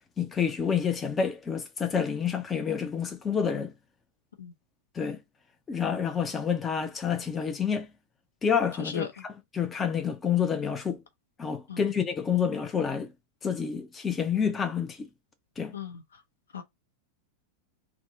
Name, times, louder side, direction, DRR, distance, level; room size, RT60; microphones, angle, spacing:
voice 1, 0.2-3.7 4.9-5.2 5.7-7.9 8.4-11.0 11.4-13.1 13.4-15.1 15.6-15.7, left 7 dB, 20° left, 0.4 m, -28 dB
voice 2, 15.7-16.2 16.5-16.6, left 7 dB, 70° left, 0.6 m, -37 dB
3.5 x 2.0 x 3.6 m
figure-of-eight pair, 90°, 0 cm